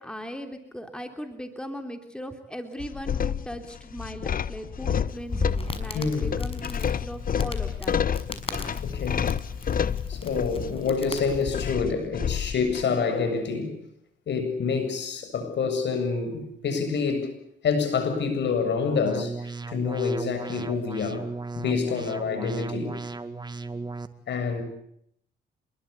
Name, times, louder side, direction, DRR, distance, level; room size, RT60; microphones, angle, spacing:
voice 1, 0.0-8.0 8.3-8.6, equal, 5° left, 6 dB, 3.4 m, -38 dB
sound 1, 2.8-12.8, left 8 dB, 45° left, 1.0 m, -30 dB
Crackle, 5.1-11.7, left 3 dB, 30° left, 6.1 m, -36 dB
voice 2, 5.9-6.3 8.8-9.3 10.1-13.8 14.3-17.3 17.6-21.2 21.6-22.9 24.3-24.6, left 5 dB, 65° left, 8 dB, 7.7 m, -27 dB
sound 2, 19.1-24.1, right 3 dB, 20° right, 2.1 m, -35 dB
27.5 x 22.0 x 8.5 m, 0.72 s
cardioid pair, 90°, 20 cm